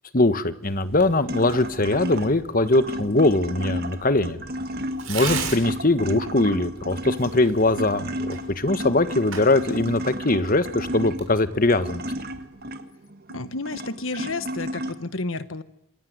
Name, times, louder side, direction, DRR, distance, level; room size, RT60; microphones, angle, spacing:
voice 1, 0.1-4.4 5.1-12.0, left 2 dB, 40° left, 11 dB, 1.4 m, -21 dB
sound 1, 0.7-14.9, equal, 45° right, 1.7 m, -33 dB
Tearing, 0.9-12.5, right 5 dB, 70° right, 6.5 m, -40 dB
voice 2, 13.3-15.6, left 3 dB, 70° left, 12 dB, 1.4 m, -31 dB
27.5 x 22.0 x 9.6 m, 0.78 s
head